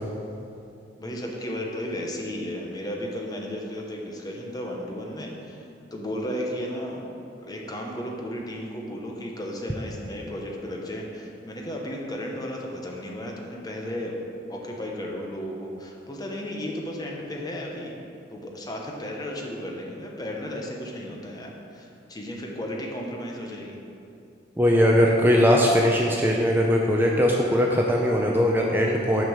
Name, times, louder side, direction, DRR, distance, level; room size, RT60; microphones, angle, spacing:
voice 1, 1.0-5.7 5.9-14.2 14.5-17.9 18.3-23.8, equal, 20° left, -1 dB, 0.9 m, -34 dB
voice 2, 24.6-29.2, equal, 10° right, -1 dB, 0.5 m, -20 dB
6.3 x 5.2 x 6.3 m, 2.6 s
head